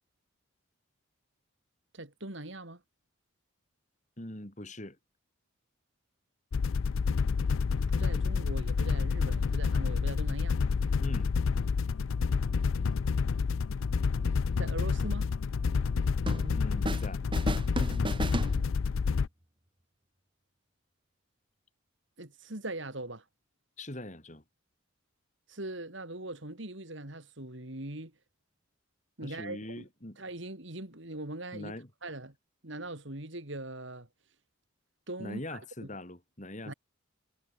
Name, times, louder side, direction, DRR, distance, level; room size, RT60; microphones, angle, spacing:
voice 1, 1.9-2.8 7.9-10.6 14.6-15.3 22.2-23.2 25.5-28.1 29.2-29.8 30.2-31.7 32.0-32.3 32.6-34.1 35.1-35.9 36.6-36.7, right 2 dB, 60° right, 3.2 m, -41 dB
voice 2, 4.2-5.0 11.0-11.3 16.5-17.3 23.8-24.4 29.2-30.2 31.5-31.9 35.2-36.7, left 1 dB, 35° left, 3.5 m, -42 dB
sound 1, 6.5-19.3, left 5 dB, 75° left, 0.4 m, -29 dB
sound 2, 16.3-17.1 17.3-19.1, right 1 dB, 25° right, 2.5 m, -35 dB
head